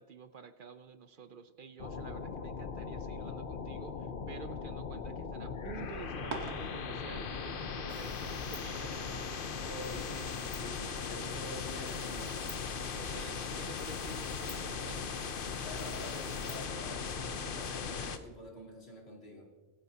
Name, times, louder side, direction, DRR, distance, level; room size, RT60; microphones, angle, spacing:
voice 1, 0.0-9.6 9.9-10.3 12.9-15.2, right 5 dB, 60° right, 11 dB, 0.8 m, -50 dB
sound 1, 1.8-18.2, left 5 dB, 60° left, 1.0 m, -39 dB
sound 2, 5.7-11.0, right 4 dB, 85° right, 1.6 m, -49 dB
sound 3, 7.9-16.7, left 1 dB, 10° left, 1.7 m, -54 dB
voice 2, 9.6-12.4 15.6-19.5, equal, 75° left, -2 dB, 3.0 m, -47 dB
23.0 x 10.5 x 2.8 m, 1.3 s
omnidirectional pair, 1.1 m